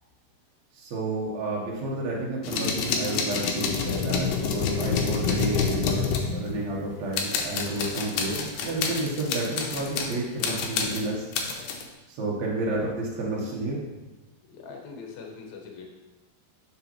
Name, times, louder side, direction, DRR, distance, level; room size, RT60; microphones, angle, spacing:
voice 1, 0.7-11.3 12.1-13.8, right 2 dB, 75° right, -5 dB, 1.6 m, -31 dB
sound 1, 2.4-6.8 7.1-10.1 10.4-11.8, left 5 dB, 90° left, 1.9 m, -28 dB
voice 2, 14.5-15.8, left 5 dB, 70° left, 0 dB, 1.7 m, -42 dB
7.0 x 6.7 x 2.9 m, 1.1 s
omnidirectional pair, 4.7 m